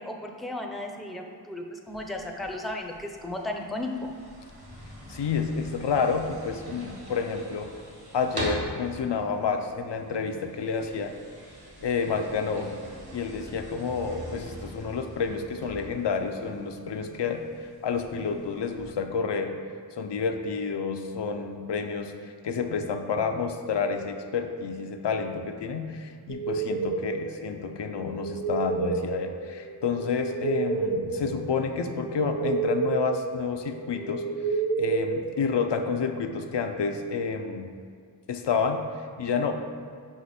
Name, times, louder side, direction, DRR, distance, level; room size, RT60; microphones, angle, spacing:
voice 1, 0.0-4.1, left 1 dB, ahead, 2 dB, 0.5 m, -35 dB
sound 1, 1.9-18.9, right 1 dB, 65° right, 1.4 m, -43 dB
voice 2, 5.1-7.7 8.1-11.1 11.8-12.7 13.1-17.5 17.8-19.5 19.9-22.1 22.4-34.2 34.8-37.7 38.3-39.7, left 5 dB, 80° left, 5 dB, 0.5 m, -29 dB
sound 2, 26.3-36.0, right 4 dB, 85° right, 0.7 m, -31 dB
5.0 x 4.9 x 4.2 m, 2.1 s
wide cardioid pair, 65°, 41 cm